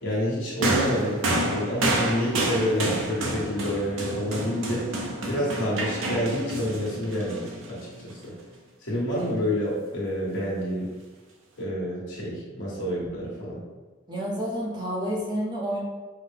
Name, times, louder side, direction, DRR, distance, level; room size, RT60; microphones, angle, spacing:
voice 1, 0.0-4.9 5.3-8.3 8.8-10.9 11.6-13.6, equal, 60° left, -5 dB, 1.3 m, -28 dB
sound 1, 0.6-8.1 9.1-9.3, right 1 dB, 70° right, 0.7 m, -29 dB
voice 2, 14.1-15.8, equal, 20° right, -5 dB, 0.7 m, -29 dB
5.6 x 2.2 x 3.4 m, 1.3 s
head